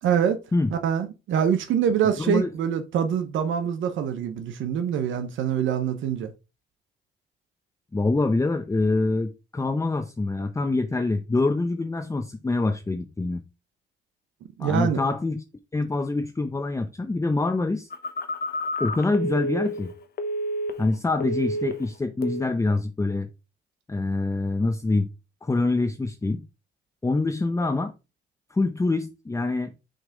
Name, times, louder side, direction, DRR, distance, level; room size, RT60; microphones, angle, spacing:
voice 1, 0.0-0.4 0.7-6.3 14.6-15.0, right 8 dB, 75° right, 0.9 m, -25 dB
voice 2, 2.2-2.5 7.9-13.4 14.6-15.4 15.7-17.9 18.8-19.9 20.8-23.3 23.9-25.1 25.4-26.4 27.0-27.9 28.5-29.7, left 3 dB, 15° left, 0.7 m, -25 dB
Telephone, 17.9-21.0 21.2-21.9 22.2-22.5, equal, 50° left, 1.0 m, -30 dB
6.4 x 3.3 x 5.1 m
cardioid pair, 90°, 20 cm